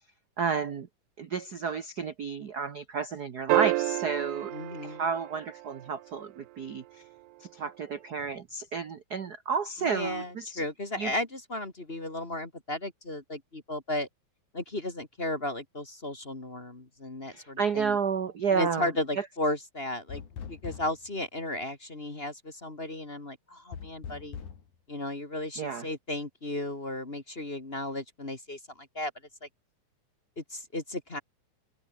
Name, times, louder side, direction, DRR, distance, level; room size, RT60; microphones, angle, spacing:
voice 1, 0.4-0.9 1.2-4.5 4.8-7.0 7.4-10.6 11.0-11.1 17.3-18.9 19.2-19.3 25.6-25.9, right 6 dB, 50° right, 1.2 m, -31 dB
sound 1, 3.5-6.0 8.2-8.3, right 18 dB, 85° right, 1.3 m, -29 dB
voice 2, 4.5-5.0 9.8-14.1 14.5-18.0 18.5-20.2 20.5-24.4 24.9-29.1 30.4-31.2, left 1 dB, 20° left, 2.2 m, -35 dB
sound 2, 20.1-21.1 23.7-24.6, left 7 dB, 85° left, 4.3 m, -41 dB
omnidirectional pair, 3.4 m